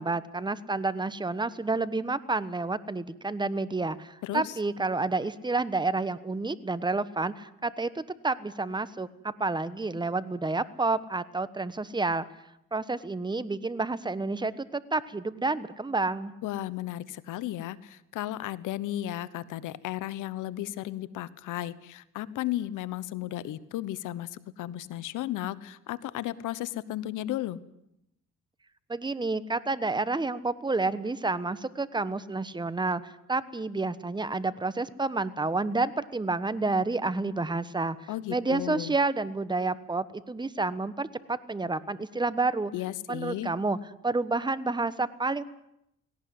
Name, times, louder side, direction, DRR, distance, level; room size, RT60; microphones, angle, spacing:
voice 1, 0.0-12.2 12.7-16.3 28.9-42.7 43.1-43.8 44.0-45.4, right 3 dB, 15° right, 14 dB, 1.2 m, -29 dB
voice 2, 4.2-4.5 16.4-27.6 38.1-39.0 42.7-43.5, left 14 dB, 90° left, 17 dB, 1.1 m, -34 dB
18.0 x 17.5 x 9.5 m, 0.82 s
cardioid pair, 90°, 30 cm